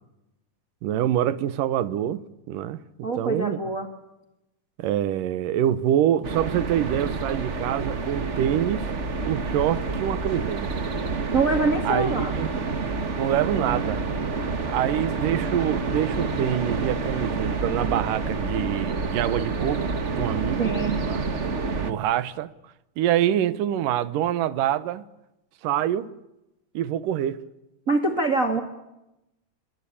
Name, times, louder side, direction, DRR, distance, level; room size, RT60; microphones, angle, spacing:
voice 1, 0.8-2.2 2.5-3.6 4.8-8.9 9.3-10.8 11.9-12.5 13.2-14.0 14.7-21.2 21.8-22.5 23.0-25.0 25.6-26.1 26.7-27.4, right 11 dB, 75° right, 2.6 m, -26 dB
voice 2, 3.0-3.9 11.3-12.3 20.6-21.0 27.9-28.6, right 3 dB, 30° right, 1.9 m, -24 dB
sound 1, 6.2-21.9, right 4 dB, 45° right, 0.9 m, -28 dB
27.0 x 24.0 x 8.6 m
omnidirectional pair, 4.0 m